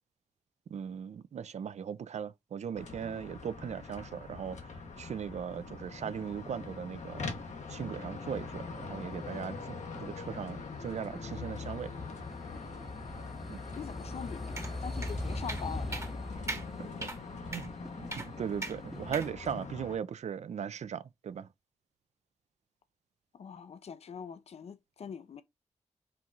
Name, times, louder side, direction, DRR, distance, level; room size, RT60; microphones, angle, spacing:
voice 1, 0.7-7.3 7.7-11.9 13.5-13.6 17.5-17.7 18.2-21.5, right 8 dB, 70° right, 0.4 m, -38 dB
sound 1, 2.7-20.0, left 4 dB, 75° left, 0.9 m, -43 dB
sound 2, 8.4-19.3, left 1 dB, ahead, 0.6 m, -42 dB
voice 2, 13.7-16.1 23.3-25.4, left 7 dB, 60° left, 0.4 m, -43 dB
sound 3, 14.6-14.7 15.0-15.1 15.5-15.6 15.9-16.1 16.5-16.6 17.0-17.2 17.5-17.7 18.1-18.3 18.6-18.8 19.1-19.3, right 2 dB, 25° right, 0.9 m, -38 dB
4.4 x 2.4 x 3.8 m
cardioid pair, 55°, 12 cm